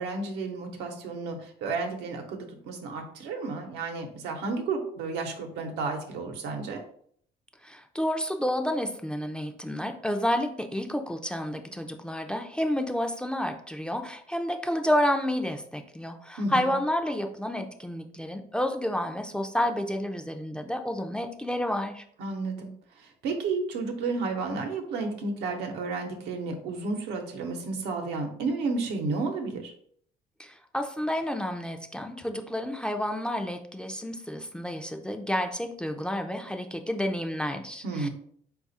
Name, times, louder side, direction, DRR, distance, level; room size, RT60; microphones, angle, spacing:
voice 1, 0.0-6.8 16.4-16.7 22.2-22.7 23.0-29.7 37.8-38.1, right 3 dB, 90° right, 3 dB, 0.8 m, -32 dB
voice 2, 7.6-22.0 30.4-38.1, left 1 dB, 5° left, 5 dB, 0.4 m, -30 dB
4.1 x 2.4 x 4.0 m, 0.62 s
cardioid pair, 110°, 17 cm